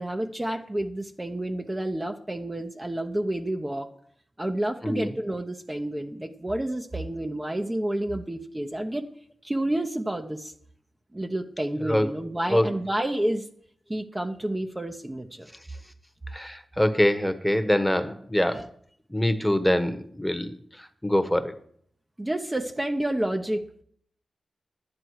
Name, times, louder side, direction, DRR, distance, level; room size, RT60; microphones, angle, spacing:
voice 1, 0.0-3.9 4.4-9.1 9.4-10.5 11.1-13.5 13.9-15.5 18.5-18.6 22.2-23.8, right 1 dB, 20° right, 3 dB, 0.9 m, -29 dB
voice 2, 11.8-12.1 12.5-12.7 16.3-18.7 19.1-21.5, left 1 dB, 5° left, 9 dB, 1.2 m, -24 dB
11.5 x 9.6 x 4.8 m, 0.64 s
cardioid pair, 45°, 0 cm